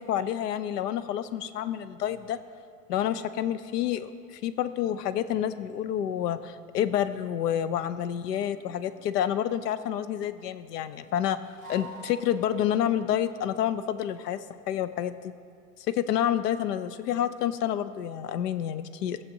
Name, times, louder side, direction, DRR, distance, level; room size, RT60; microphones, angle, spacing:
voice 1, 0.0-2.4 2.9-11.4 11.7-14.4 14.7-15.1 15.8-19.2, left 10 dB, 80° left, 13 dB, 0.6 m, -29 dB
sound 1, 8.3-9.3 11.5-13.0, right 1 dB, 20° left, 1.3 m, -47 dB
15.5 x 7.3 x 2.7 m, 2.4 s
supercardioid pair, 180°, 47 cm